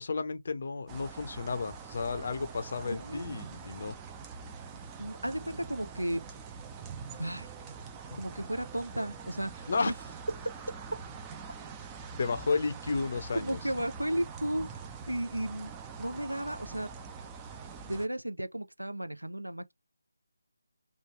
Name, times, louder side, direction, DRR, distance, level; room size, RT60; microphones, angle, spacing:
voice 1, 0.0-4.0 8.1-8.2 9.7-9.9 12.2-13.6, left 4 dB, 45° left, 0.5 m, -32 dB
sound 1, 0.9-18.1, right 5 dB, 10° right, 0.4 m, -44 dB
voice 2, 2.8-3.2 5.0-6.2 7.1-7.5 8.2-9.9 13.3-14.7 15.1-15.7 16.0-16.9 17.8-19.7, right 1 dB, 85° right, 0.5 m, -34 dB
3.1 x 2.3 x 2.9 m
figure-of-eight pair, 155°, 0 cm